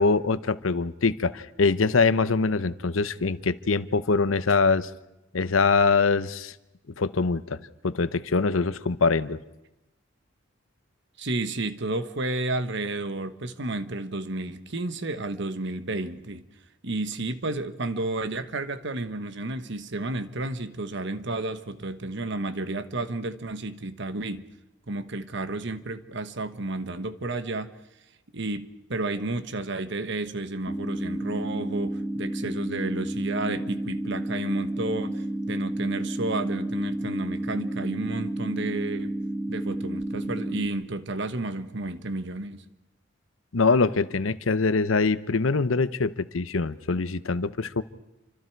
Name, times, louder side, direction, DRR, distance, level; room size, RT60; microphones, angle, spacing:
voice 1, 0.0-4.9 5.3-6.5 7.0-9.4 43.5-47.8, left 4 dB, 85° left, 0.8 m, -23 dB
voice 2, 11.2-16.4 16.8-24.5 24.9-27.8 28.3-39.1 39.5-42.6, right 2 dB, 65° right, 1.2 m, -31 dB
sound 1, 30.7-40.7, right 1 dB, 5° left, 1.3 m, -31 dB
28.5 x 25.0 x 4.6 m
head